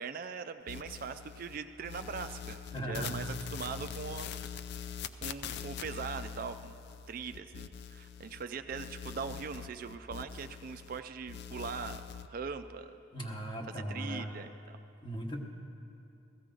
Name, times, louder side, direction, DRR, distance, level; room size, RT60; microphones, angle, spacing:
voice 1, 0.0-4.3 5.2-6.8 7.1-12.0 12.3-12.9 13.7-14.8, right 5 dB, 45° right, 9 dB, 0.3 m, -41 dB
sound 1, 0.7-1.6 1.8-8.4 8.7-11.0 11.3-12.3, left 8 dB, 55° left, 0.4 m, -43 dB
voice 2, 2.7-3.1 13.1-14.3 15.0-15.4, right 1 dB, 25° left, 2 dB, 1.1 m, -38 dB
16.0 x 14.5 x 3.8 m, 2.6 s
head